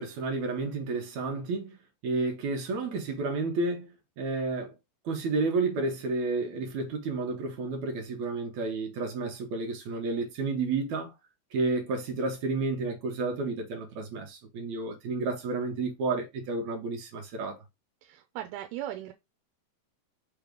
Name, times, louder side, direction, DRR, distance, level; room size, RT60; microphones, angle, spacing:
voice 1, 0.0-1.8 2.0-4.7 5.1-11.1 11.5-17.6, right 3 dB, 65° right, 2.1 m, -31 dB
voice 2, 18.0-19.1, right 12 dB, 85° right, 2.6 m, -38 dB
5.9 x 3.3 x 5.2 m
omnidirectional pair, 4.7 m